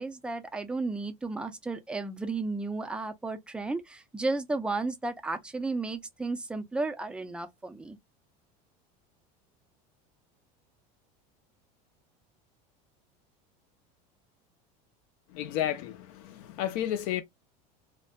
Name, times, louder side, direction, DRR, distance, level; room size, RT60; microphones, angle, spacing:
voice 1, 0.0-8.0, right 3 dB, 5° right, 0.3 m, -33 dB
voice 2, 15.3-17.2, left 11 dB, 70° left, 0.7 m, -32 dB
2.5 x 2.1 x 2.4 m
supercardioid pair, 140°, 19 cm